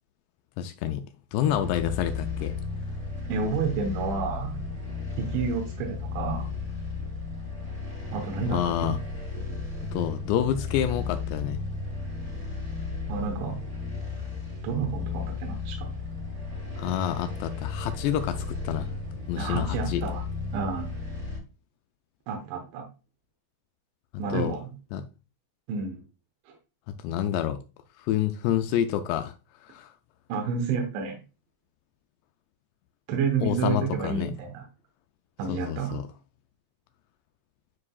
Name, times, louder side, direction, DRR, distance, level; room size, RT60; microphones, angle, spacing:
voice 1, 0.6-1.0 1.3-2.5 8.5-9.0 9.9-11.6 16.8-18.9 19.3-20.0 24.3-24.5 24.9-25.0 27.0-27.6 28.0-29.3 29.7-29.9 33.4-34.3 35.5-36.1, left 11 dB, 85° left, 2.5 m, -28 dB
sound 1, 1.4-21.4, left 4 dB, 50° right, 0.8 m, -34 dB
voice 2, 3.3-4.5 5.2-6.5 8.1-9.0 13.1-13.6 14.6-15.9 19.4-20.2 20.5-20.9 22.3-22.8 24.2-24.7 25.7-26.0 26.5-26.6 30.3-31.2 33.1-34.6 35.4-36.0, right 5 dB, 85° right, 3.5 m, -30 dB
9.5 x 4.7 x 2.3 m
omnidirectional pair, 5.3 m